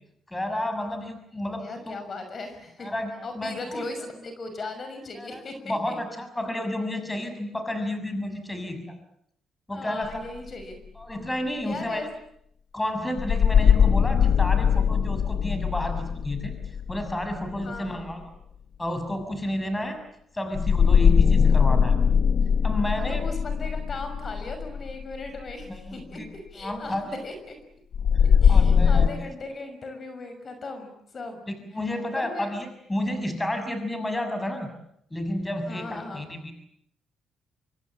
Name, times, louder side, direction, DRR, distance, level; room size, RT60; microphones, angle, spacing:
voice 1, 0.3-1.9 2.8-3.9 5.2-8.9 9.7-10.3 11.0-12.0 12.7-16.5 16.9-18.2 18.8-20.0 20.3-22.0 22.6-23.3 25.7-26.3 26.6-27.1 28.5-29.3 31.5-34.7 35.1-36.5, left 1 dB, 15° left, 7 dB, 6.4 m, -31 dB
voice 2, 1.6-2.9 3.2-5.9 9.7-10.8 11.5-12.1 17.6-18.1 23.1-26.2 26.5-27.6 28.4-31.5 32.1-32.5 35.6-36.3, left 3 dB, 40° left, 7 dB, 6.0 m, -38 dB
sound 1, 10.0-10.2 13.2-17.9 20.5-25.6 27.9-29.1, left 7 dB, 60° left, 1.3 m, -21 dB
25.5 x 24.0 x 8.8 m, 0.72 s
cardioid pair, 90°, 0 cm